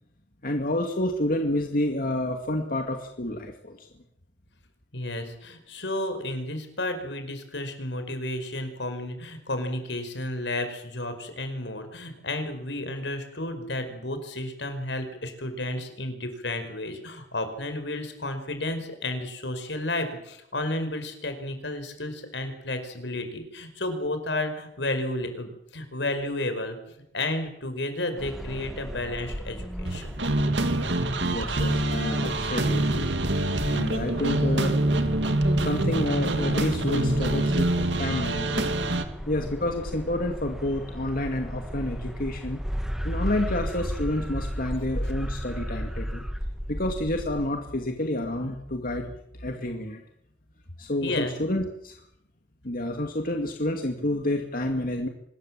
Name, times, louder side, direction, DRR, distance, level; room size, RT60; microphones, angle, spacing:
voice 1, 0.4-3.9 31.2-33.1 33.6-34.8 35.6-38.8 39.3-42.6 43.0-46.2 46.7-49.1 49.4-50.0 50.8-52.0 52.6-55.1, left 1 dB, 55° left, 3 dB, 2.3 m, -29 dB
voice 2, 4.9-30.1 51.0-51.3, left 1 dB, 80° left, 8 dB, 5.2 m, -32 dB
sound 1, 28.2-47.5, equal, 5° right, 2.2 m, -35 dB
sound 2, 29.8-39.0, right 1 dB, 85° right, 2.3 m, -25 dB
26.0 x 20.5 x 7.6 m, 0.76 s
head